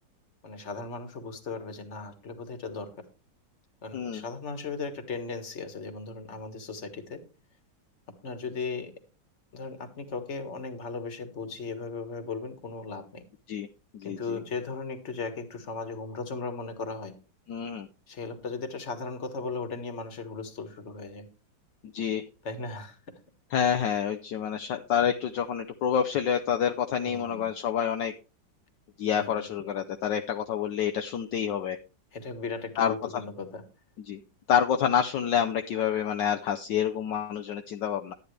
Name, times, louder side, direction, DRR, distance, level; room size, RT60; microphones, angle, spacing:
voice 1, 0.4-3.0 3.8-7.2 8.1-8.9 9.5-13.2 14.0-17.2 18.1-21.3 22.4-23.0 27.0-27.5 29.1-29.5 32.1-33.6, left 4 dB, 40° left, 8 dB, 1.7 m, -37 dB
voice 2, 3.9-4.2 13.5-13.7 13.9-14.2 17.5-17.9 21.8-22.2 23.5-28.1 29.0-31.8 32.8-32.9 34.1-34.2 34.5-38.1, left 8 dB, 70° left, 6 dB, 1.3 m, -28 dB
12.0 x 9.4 x 3.3 m, 0.32 s
omnidirectional pair, 2.1 m